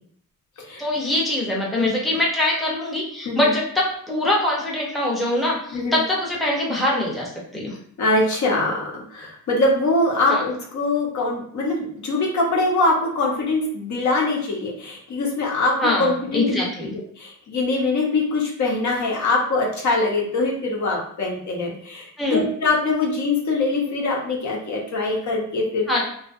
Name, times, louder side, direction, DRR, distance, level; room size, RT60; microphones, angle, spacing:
voice 1, 0.8-7.8 10.3-10.4 15.8-16.9 22.2-22.5 25.9-26.0, left 1 dB, ahead, -3 dB, 0.5 m, -23 dB
voice 2, 8.0-16.6 17.2-25.9, left 2 dB, 60° left, -2 dB, 0.8 m, -23 dB
2.6 x 2.4 x 2.4 m, 0.65 s
cardioid pair, 120°, 32 cm